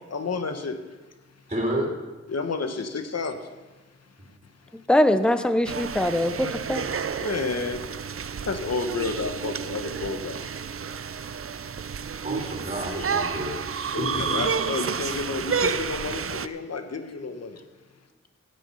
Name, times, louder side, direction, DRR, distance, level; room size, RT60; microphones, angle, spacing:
voice 1, 0.1-0.8 2.3-3.5 7.2-7.9 8.4-10.4 13.0-13.1 13.9-17.6, left 4 dB, 55° left, 7 dB, 1.1 m, -30 dB
voice 2, 1.5-1.9 4.2-4.3 12.2-14.5, right 1 dB, 20° right, -2 dB, 2.9 m, -30 dB
voice 3, 4.7-6.9, left 1 dB, 5° left, 10 dB, 0.7 m, -22 dB
sound 1, 5.6-16.5, right 6 dB, 45° right, 0.5 m, -30 dB
16.5 x 6.6 x 5.5 m, 1.2 s
wide cardioid pair, 65°, 30 cm